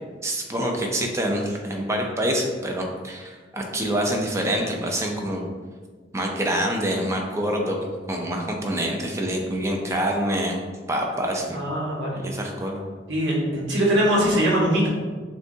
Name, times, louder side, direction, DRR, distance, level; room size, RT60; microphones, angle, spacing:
voice 1, 0.2-5.4 6.1-10.6 10.9-11.6 12.1-12.8, right 1 dB, 15° right, 1 dB, 0.5 m, -26 dB
voice 2, 11.5-12.2 13.1-14.9, equal, 70° right, -5 dB, 1.2 m, -22 dB
6.4 x 2.3 x 2.7 m, 1.5 s
head